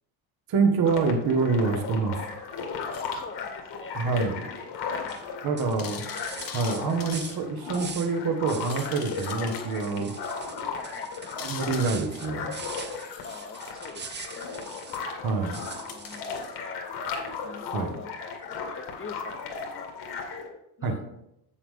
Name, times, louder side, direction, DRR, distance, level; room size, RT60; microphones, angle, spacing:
voice 1, 0.5-2.2 3.9-4.4 5.4-6.0 6.5-10.1 11.4-12.5 15.2-15.6 17.7-17.9 20.8-21.0, right 4 dB, 50° right, 5 dB, 1.3 m, -26 dB
sound 1, 0.8-20.5, left 5 dB, 65° left, 1.9 m, -36 dB
sound 2, 2.9-3.2 4.2-4.3 4.7-4.8 5.1-5.2 5.8-7.4 7.9-8.0 8.7-9.7 10.2-10.3 11.4-12.3 12.9-13.7 14.7-17.7 19.6-19.7, left 7 dB, 45° left, 1.3 m, -43 dB
voice 2, 3.0-4.0 4.8-5.9 10.7-11.4 13.2-14.8 15.8-16.9 17.4-21.2, left 4 dB, 25° left, 7 dB, 1.0 m, -44 dB
sound 3, 5.1-5.3 5.6-8.2 8.5-9.4 9.7-15.1 15.5-16.4, right 6 dB, 25° right, 0.6 m, -43 dB
7.1 x 6.9 x 3.7 m, 0.81 s
supercardioid pair, 85°, 45 cm